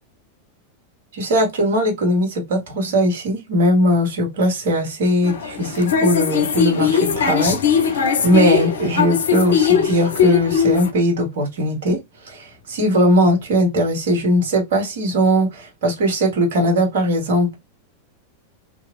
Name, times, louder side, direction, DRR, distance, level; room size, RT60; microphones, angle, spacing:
voice 1, 1.1-17.6, equal, 60° right, 1.2 m, -19 dB
sound 1, 5.2-10.9, left 7 dB, 65° left, 0.5 m, -19 dB
2.9 x 2.6 x 2.4 m
figure-of-eight pair, 90°, 0 cm